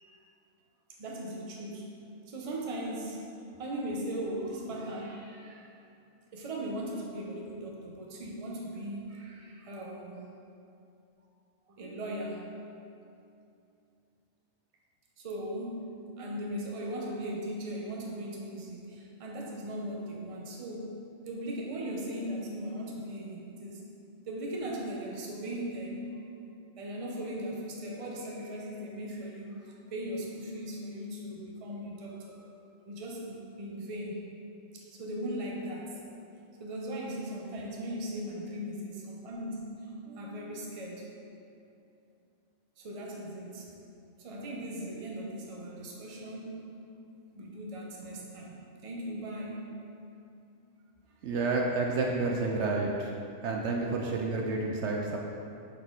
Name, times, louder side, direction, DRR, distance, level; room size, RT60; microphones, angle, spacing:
voice 1, 1.0-1.9 2.3-3.3 3.6-5.7 6.3-10.3 11.7-12.5 15.2-21.0 21.2-23.8 24.3-26.2 26.8-32.4 32.9-34.2 34.7-35.9 36.6-41.1 42.8-43.7 44.2-46.7 47.3-49.7, right 1 dB, 35° right, -2 dB, 0.7 m, -38 dB
voice 2, 51.2-53.1 53.4-55.2, right 3 dB, 70° right, 0 dB, 0.8 m, -30 dB
7.0 x 4.1 x 3.8 m, 2.6 s
omnidirectional pair, 1.3 m